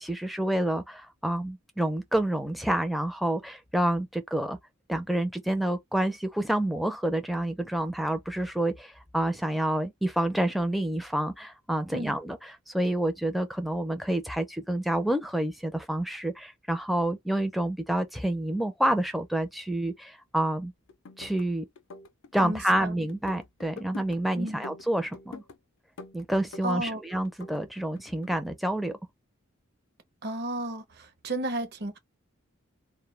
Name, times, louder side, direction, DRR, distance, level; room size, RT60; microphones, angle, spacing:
voice 1, 0.0-4.6 4.9-20.7 21.2-21.7 22.3-25.4 26.1-29.0, right 1 dB, ahead, 0.4 m, -28 dB
sound 1, 20.9-21.5 21.8-22.8 23.1-24.2 24.5-25.6 26.0-27.0 27.2-28.4, left 4 dB, 65° left, 0.4 m, -45 dB
voice 2, 22.4-22.9 24.3-24.6 26.6-27.0 30.2-32.0, right 1 dB, 50° right, 0.7 m, -33 dB
2.2 x 2.1 x 3.1 m
head